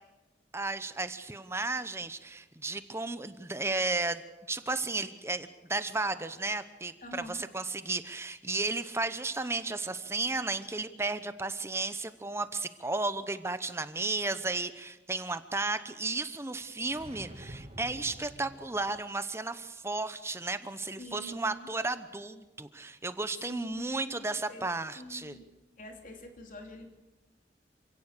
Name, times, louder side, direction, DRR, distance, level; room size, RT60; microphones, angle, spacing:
voice 1, 0.5-4.2 4.5-25.4, right 3 dB, 15° right, 11 dB, 0.8 m, -34 dB
voice 2, 7.0-7.4 21.0-21.7 23.4-24.7 24.9-25.5 25.8-26.9, left 1 dB, 45° left, 3 dB, 3.2 m, -46 dB
sound 1, 16.9-19.1, right 1 dB, 35° right, 1.5 m, -48 dB
27.5 x 17.0 x 6.8 m, 1.1 s
head